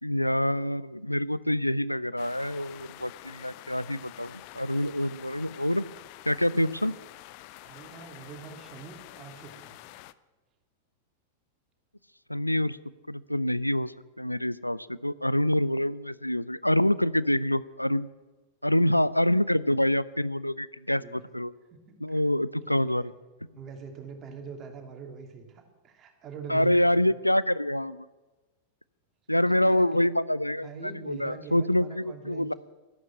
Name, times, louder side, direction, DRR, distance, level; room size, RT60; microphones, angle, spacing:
voice 1, 0.0-5.9 6.3-6.9 12.3-12.8 13.1-18.1 18.6-21.5 22.0-23.1 26.5-28.1 29.3-32.5, left 1 dB, 90° left, 18 dB, 0.5 m, -26 dB
sound 1, 2.2-10.1, left 17 dB, 45° left, 0.6 m, -48 dB
voice 2, 7.6-9.7 20.9-21.2 21.7-22.3 22.7-23.1 23.5-27.0 29.4-30.0 30.6-32.5, right 6 dB, 30° right, 4 dB, 2.6 m, -44 dB
12.5 x 12.0 x 8.7 m, 1.2 s
figure-of-eight pair, 90°, 0 cm